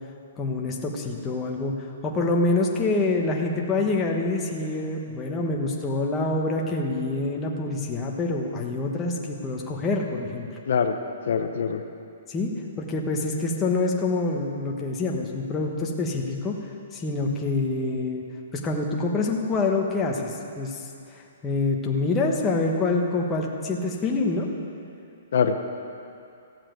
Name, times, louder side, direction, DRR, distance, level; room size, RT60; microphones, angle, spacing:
voice 1, 0.4-10.5 12.3-12.5 12.8-16.6 16.9-18.2 18.5-20.8 21.1-24.5, left 3 dB, 10° left, -1 dB, 1.2 m, -26 dB
voice 2, 10.7-11.0 11.3-11.8 25.3-25.6, left 6 dB, 65° left, 6 dB, 0.8 m, -23 dB
14.5 x 7.4 x 9.1 m, 2.6 s
hypercardioid pair, 165°, 0 cm